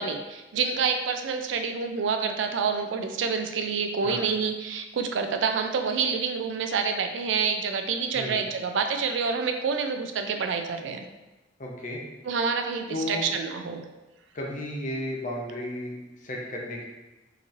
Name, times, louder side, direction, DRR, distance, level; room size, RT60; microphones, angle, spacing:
voice 1, 0.0-11.1 12.2-13.9, right 5 dB, 80° right, 6 dB, 0.4 m, -27 dB
voice 2, 11.6-12.0 12.9-13.3 14.3-16.9, left 1 dB, 45° left, -1 dB, 0.7 m, -33 dB
3.9 x 3.0 x 2.6 m, 1.1 s
head